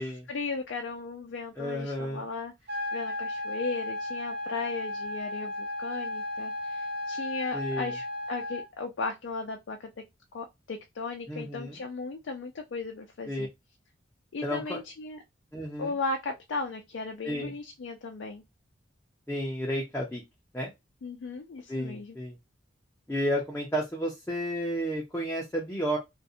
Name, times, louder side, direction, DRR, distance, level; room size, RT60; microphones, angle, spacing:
voice 1, 0.0-2.5 2.9-9.9 10.3-13.5 14.3-15.2 15.8-18.4 21.0-22.2, left 3 dB, 70° left, 0.4 m, -36 dB
voice 2, 1.6-2.2 7.5-7.9 11.3-11.8 13.3-13.5 14.4-14.8 15.5-15.9 17.2-17.5 19.3-20.2 20.5-20.7 21.7-22.3 23.1-26.0, equal, 10° left, 0.5 m, -32 dB
sound 1, 2.7-8.7, left 1 dB, 60° right, 1.0 m, -34 dB
2.4 x 2.2 x 2.6 m
head